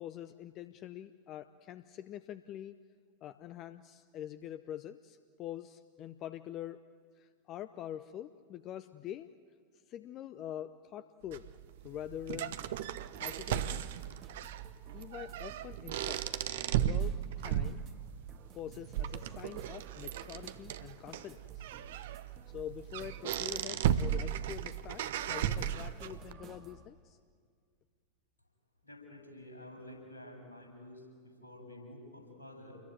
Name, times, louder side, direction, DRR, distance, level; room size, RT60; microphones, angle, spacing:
voice 1, 0.0-2.8 3.2-6.8 7.2-9.3 9.7-11.5 11.8-12.6 13.2-13.8 14.9-16.5 16.8-17.8 18.5-21.7 22.5-27.2, left 11 dB, 35° left, 13 dB, 0.7 m, -45 dB
sound 1, 11.3-26.3, right 10 dB, 55° right, 0.9 m, -36 dB
sound 2, 13.1-26.9, right 5 dB, 30° right, 2.0 m, -57 dB
voice 2, 28.8-32.8, left 1 dB, 80° left, 1 dB, 8.0 m, -50 dB
28.5 x 22.0 x 9.5 m, 2.1 s
figure-of-eight pair, 90°, 0 cm